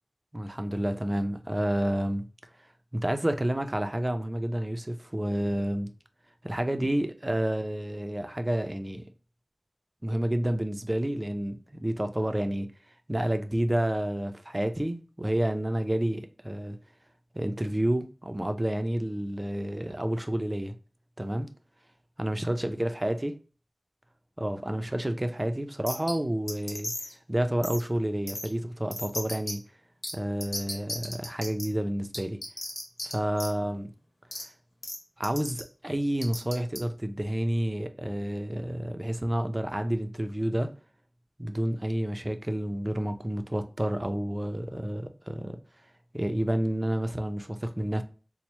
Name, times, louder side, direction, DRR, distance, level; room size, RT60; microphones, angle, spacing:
voice 1, 0.3-2.3 2.9-5.9 6.4-9.0 10.0-12.7 13.1-16.8 17.3-20.7 21.2-21.5 22.2-23.3 24.4-26.9 27.3-29.6 30.1-32.4 33.0-33.9 35.2-40.7 41.4-45.6 46.1-48.0, right 1 dB, 25° right, 0.4 m, -29 dB
sound 1, 25.9-26.1 26.5-27.1 27.6-27.8 28.3-28.5 28.9-29.5 30.0-30.1 30.4-31.6 32.1-33.1 33.4-33.5 34.3-34.4 34.8-35.0 35.2-35.6 36.2-36.8, left 1 dB, 85° left, 1.0 m, -34 dB
4.2 x 2.0 x 2.9 m
wide cardioid pair, 50°, 0 cm